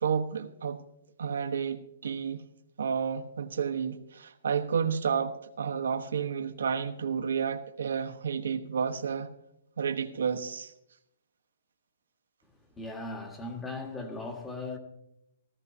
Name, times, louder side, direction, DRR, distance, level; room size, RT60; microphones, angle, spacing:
voice 1, 0.0-0.8 1.2-2.4 2.8-9.3 9.8-10.7, right 6 dB, 85° right, 1.1 m, -31 dB
voice 2, 12.7-14.8, left 2 dB, 10° left, 1.6 m, -38 dB
17.0 x 14.5 x 2.7 m
hypercardioid pair, 160°, 0 cm